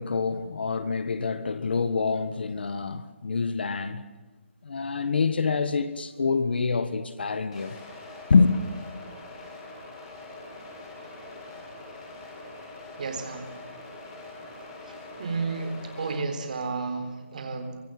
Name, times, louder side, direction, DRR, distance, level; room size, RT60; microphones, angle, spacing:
voice 1, 0.0-4.0 4.6-7.8 8.3-8.6, left 4 dB, 50° left, 1.6 m, -26 dB
sound 1, 7.5-16.2, left 2 dB, 25° left, 7.3 m, -43 dB
voice 2, 13.0-13.5 14.9-17.8, right 4 dB, 35° right, 4.0 m, -32 dB
24.5 x 22.0 x 9.3 m
hypercardioid pair, 175°, 7 cm